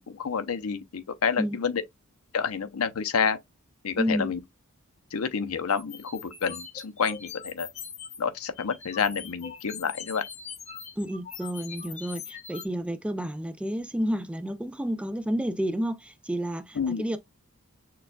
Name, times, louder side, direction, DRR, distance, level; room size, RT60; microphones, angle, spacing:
voice 1, 0.0-1.8 2.3-3.4 3.8-4.4 5.1-7.7 8.2-10.2 16.8-17.2, left 6 dB, 80° left, 0.6 m, -29 dB
voice 2, 4.0-4.3 11.0-17.2, equal, 5° right, 0.3 m, -30 dB
sound 1, 5.7-8.2 8.5-12.7, left 6 dB, 30° left, 0.7 m, -42 dB
6.6 x 2.3 x 2.2 m
head